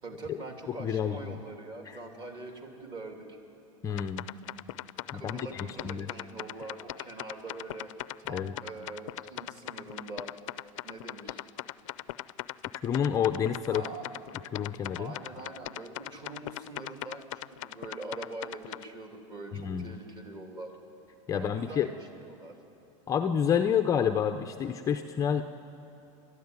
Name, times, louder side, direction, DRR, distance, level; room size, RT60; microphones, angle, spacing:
voice 1, 0.0-3.4 5.1-7.9 8.2-10.3 10.8-11.4 13.7-14.0 15.0-20.8 21.3-22.6, right 2 dB, 30° right, 3 dB, 2.8 m, -43 dB
voice 2, 0.8-1.3 1.9-2.0 3.8-4.2 5.1-6.1 8.3-8.5 12.8-13.8 14.5-15.1 19.5-19.9 21.3-21.9 23.1-25.4, left 8 dB, 20° left, 6 dB, 0.6 m, -29 dB
sound 1, 3.9-18.8, left 17 dB, 70° left, 0.5 m, -40 dB
29.0 x 13.0 x 9.7 m, 2.8 s
supercardioid pair, 155°, 17 cm